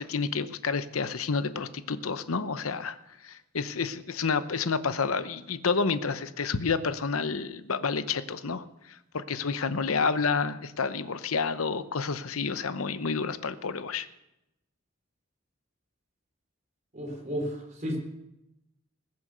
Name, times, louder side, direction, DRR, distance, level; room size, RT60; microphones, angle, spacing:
voice 1, 0.0-3.0 3.2-8.6 9.1-14.1, left 5 dB, 80° left, 12 dB, 0.8 m, -29 dB
voice 2, 16.9-18.0, equal, 35° right, 1 dB, 3.9 m, -33 dB
20.5 x 7.0 x 6.6 m, 0.89 s
head